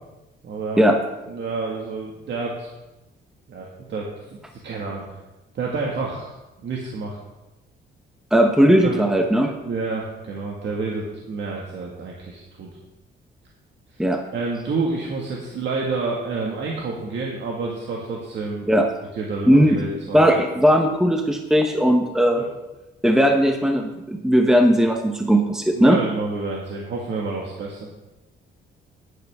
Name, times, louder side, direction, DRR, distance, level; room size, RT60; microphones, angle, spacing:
voice 1, 0.4-0.8 1.3-2.7 3.5-5.1 5.5-6.3 6.6-7.2 8.7-9.1 9.6-12.7 13.9-14.1 14.3-18.7 19.1-20.3 22.4-22.5 25.7-27.9, right 3 dB, 65° right, -2 dB, 1.9 m, -29 dB
voice 2, 8.3-9.5 14.0-14.2 18.7-18.9 19.5-19.9 20.1-22.4 23.0-26.0, equal, 5° right, 4 dB, 1.0 m, -17 dB
10.5 x 10.5 x 3.6 m, 1.0 s
cardioid pair, 90°, 20 cm